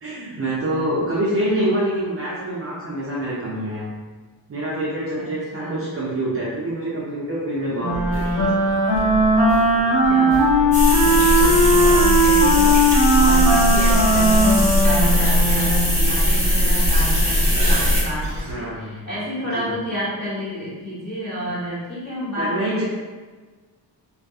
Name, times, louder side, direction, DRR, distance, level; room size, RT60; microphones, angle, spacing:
voice 1, 0.0-3.9 4.5-8.7 11.4-11.8 18.5-19.0 19.5-19.7 22.3-22.8, right 1 dB, 35° right, -8 dB, 0.4 m, -26 dB
voice 2, 5.5-5.8 10.0-10.7 11.0-22.8, equal, 25° left, -11 dB, 1.3 m, -29 dB
Wind instrument woodwind instrument, 7.8-16.0, equal, 70° left, 1.3 m, -18 dB
sound 1, 7.9-18.5, equal, 70° right, 0.7 m, -30 dB
sound 2, 10.7-18.0, equal, 5° left, 0.8 m, -19 dB
2.6 x 2.4 x 2.3 m, 1.4 s
wide cardioid pair, 155°, 42 cm